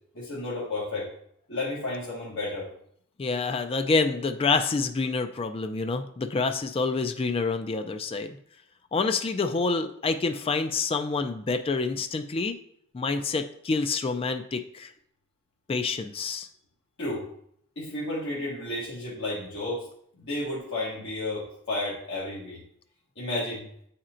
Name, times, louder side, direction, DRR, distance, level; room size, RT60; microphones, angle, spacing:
voice 1, 0.1-1.1 1.5-2.7 17.0-17.3 17.7-19.9 20.2-22.6 23.1-23.7, left 2 dB, 55° left, -8 dB, 1.7 m, -32 dB
voice 2, 3.2-8.4 8.9-12.6 12.9-14.9 15.7-16.5, left 4 dB, 25° left, 7 dB, 0.3 m, -27 dB
9.0 x 4.3 x 2.5 m, 0.67 s
head